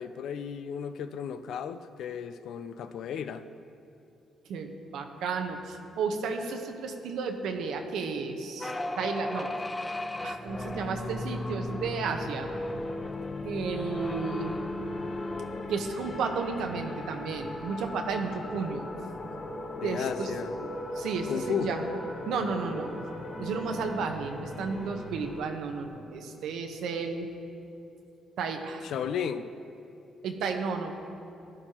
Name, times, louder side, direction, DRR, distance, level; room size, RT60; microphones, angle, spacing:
voice 1, 0.0-3.4 19.8-20.6 21.3-21.7 28.8-29.5, left 8 dB, 75° left, 11 dB, 0.4 m, -34 dB
voice 2, 4.5-9.5 10.2-12.6 13.4-14.5 15.7-18.9 19.8-20.3 20.6-20.7 20.9-22.0 22.3-22.9 23.4-27.3 28.4-28.9 30.2-30.9, right 5 dB, 80° right, 4 dB, 1.0 m, -33 dB
sound 1, 8.6-17.3, left 2 dB, 15° left, 0.5 m, -37 dB
sound 2, 10.5-25.4, left 1 dB, 45° left, 1.7 m, -40 dB
16.0 x 11.0 x 3.0 m, 2.7 s
cardioid pair, 90°, 0 cm